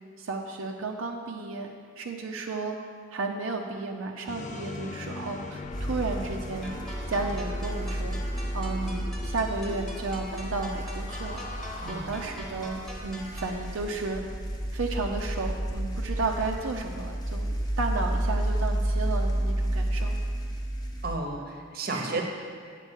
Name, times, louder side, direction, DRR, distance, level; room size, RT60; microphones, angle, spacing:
voice 1, 0.2-2.8 3.1-6.7 7.1-8.2 8.5-14.2 14.7-20.1 21.9-22.2, right 3 dB, 80° right, 1 dB, 0.6 m, -33 dB
sound 1, 4.3-12.0, left 3 dB, 35° left, 0.3 m, -41 dB
sound 2, 5.7-21.2, right 1 dB, 20° left, 0.7 m, -31 dB
sound 3, 6.6-13.6, right 1 dB, ahead, 1.1 m, -44 dB
voice 2, 11.8-12.1 21.0-22.2, right 3 dB, 45° right, 3 dB, 0.9 m, -32 dB
8.2 x 4.5 x 7.2 m, 2.1 s
head